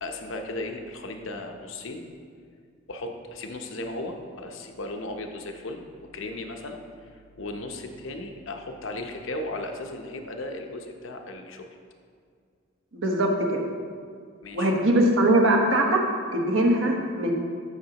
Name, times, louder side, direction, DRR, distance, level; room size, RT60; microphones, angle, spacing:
voice 1, 0.0-2.0 2.9-11.6 14.4-14.7, left 2 dB, 65° left, 4 dB, 0.8 m, -36 dB
voice 2, 12.9-13.6 14.5-16.0 16.3-17.3, right 1 dB, 65° right, 1 dB, 1.2 m, -21 dB
13.5 x 6.0 x 3.0 m, 2.2 s
head